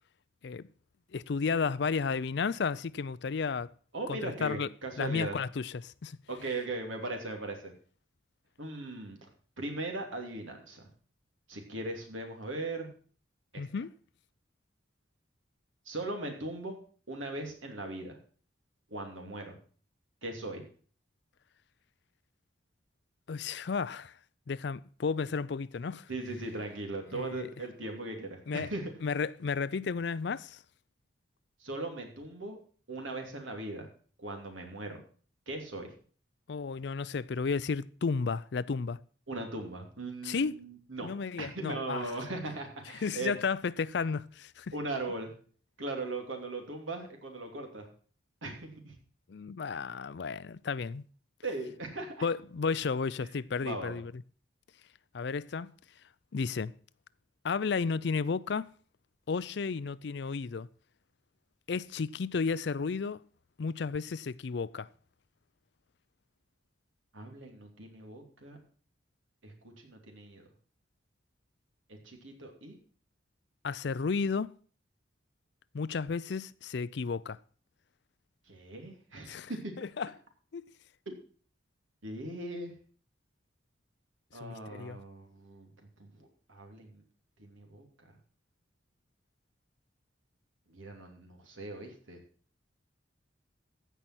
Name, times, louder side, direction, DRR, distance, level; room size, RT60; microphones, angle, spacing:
voice 1, 1.1-3.7 4.1-4.7 5.0-6.2 13.6-13.9 23.3-24.1 24.5-26.1 27.1-27.5 28.5-28.7 29.0-30.6 36.5-39.0 40.2-40.6 41.0-42.1 43.0-44.7 49.3-51.0 52.2-54.1 55.1-55.7 56.3-56.7 57.4-58.7 59.3-60.7 61.7-63.2 63.6-64.9 73.6-74.5 75.7-77.4 79.3-79.5 79.8-80.1 80.5-80.6 84.4-85.0, left 5 dB, 60° left, 0.4 m, -33 dB
voice 2, 3.9-5.4 6.3-7.7 8.6-9.3 9.6-10.9 11.5-12.9 13.5-13.6 15.8-16.8 17.1-18.2 18.9-19.6 20.2-20.6 26.1-28.9 31.6-32.6 32.9-33.9 34.2-35.0 35.5-35.9 39.3-41.1 41.4-43.3 44.7-45.3 45.8-47.9 48.4-48.9 51.4-52.3 53.2-53.3 53.6-54.0 67.1-68.6 69.4-70.5 71.9-72.7 78.5-79.7 81.1-81.2 82.0-82.7 84.3-85.7 86.0-87.0 87.4-88.1 90.7-92.2, right 2 dB, 85° right, 2.9 m, -39 dB
15.5 x 5.6 x 6.1 m
head